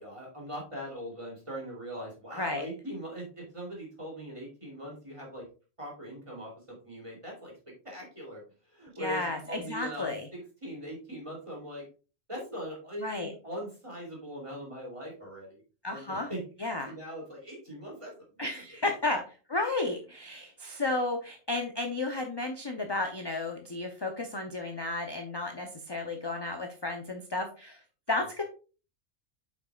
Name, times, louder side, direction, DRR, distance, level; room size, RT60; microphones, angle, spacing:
voice 1, 0.0-5.5 5.8-11.9 12.3-15.6 15.9-18.6, equal, 25° right, -2 dB, 3.2 m, -41 dB
voice 2, 9.0-10.3 13.0-13.3 15.8-16.3 16.6-16.9 18.4-19.2 19.5-27.8 28.1-28.4, left 2 dB, 25° left, 3 dB, 0.7 m, -33 dB
8.2 x 6.0 x 2.4 m, 0.35 s
omnidirectional pair, 1.3 m